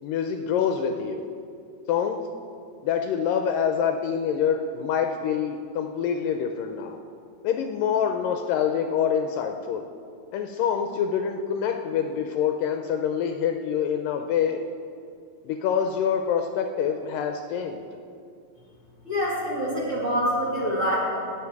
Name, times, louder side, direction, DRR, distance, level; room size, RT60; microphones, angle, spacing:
voice 1, 0.0-1.3 1.9-2.2 2.8-7.0 7.4-9.9 10.3-14.6 15.4-17.8, left 7 dB, 80° left, 5 dB, 2.2 m, -26 dB
voice 2, 19.0-21.0, equal, 25° right, -5 dB, 2.2 m, -25 dB
18.5 x 7.8 x 4.7 m, 2.3 s
omnidirectional pair, 4.2 m